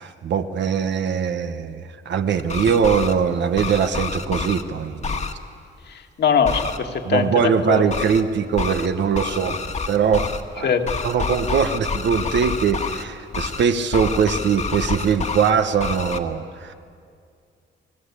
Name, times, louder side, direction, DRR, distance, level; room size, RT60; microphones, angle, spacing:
voice 1, 0.0-5.2 7.1-10.3 10.6-10.7 11.0-16.7, right 7 dB, 65° right, 9 dB, 1.1 m, -21 dB
sound 1, 2.4-3.1 3.6-4.6 5.0-5.3 6.4-6.8 7.9-8.2 8.6-8.9 9.1-10.4 10.8-13.0 13.3-13.6 13.9-15.5 15.8-16.2, left 4 dB, 35° left, 1.6 m, -28 dB
voice 2, 5.9-8.1 10.6-10.9, left 6 dB, 60° left, 5 dB, 1.9 m, -22 dB
30.0 x 18.5 x 8.3 m, 2.3 s
cardioid pair, 130°, 20 cm